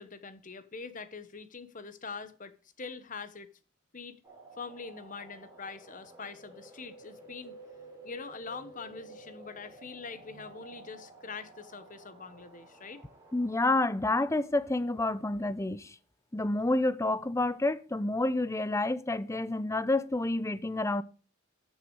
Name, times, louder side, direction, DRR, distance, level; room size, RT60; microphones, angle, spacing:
voice 1, 0.0-3.5 3.9-4.2 4.6-7.6 8.0-13.0, left 4 dB, 45° left, 1.1 m, -43 dB
sound 1, 4.2-15.5, right 2 dB, 20° right, 4.2 m, -53 dB
voice 2, 13.3-15.9 16.3-21.0, left 2 dB, 15° left, 0.6 m, -29 dB
14.0 x 6.7 x 4.7 m
head